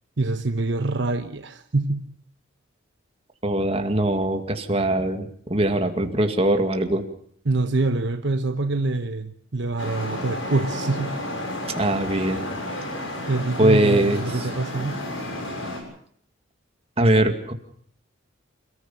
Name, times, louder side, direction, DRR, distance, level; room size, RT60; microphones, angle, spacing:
voice 1, 0.2-2.2 7.4-11.3 13.3-15.0, right 2 dB, 60° right, 1.1 m, -25 dB
voice 2, 3.4-7.1 11.8-12.4 13.6-14.5 17.0-17.5, right 1 dB, 30° right, 2.3 m, -21 dB
Traffic noise roadway noise, 9.8-15.8, left 1 dB, 75° left, 6.8 m, -32 dB
28.5 x 14.5 x 7.1 m
head